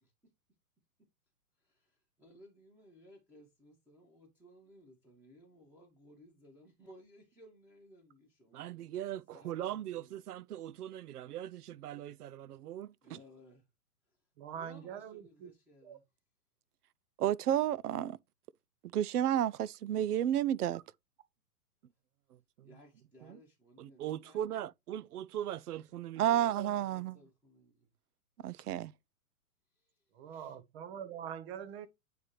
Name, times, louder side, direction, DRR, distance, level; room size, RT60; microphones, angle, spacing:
voice 1, 0.0-0.3 1.6-8.7 9.3-10.2 11.9-12.1 13.0-13.7 14.0-16.1 22.6-24.7 26.1-27.9 29.7-30.6, equal, 5° right, 1.7 m, -60 dB
voice 2, 8.5-12.9 17.2-18.2 18.9-20.8 23.8-27.2 28.4-28.9, right 11 dB, 80° right, 0.6 m, -34 dB
voice 3, 14.4-15.5 15.8-16.0 30.1-31.9, right 9 dB, 40° right, 1.0 m, -44 dB
9.4 x 3.3 x 3.0 m
hypercardioid pair, 130°, 45 cm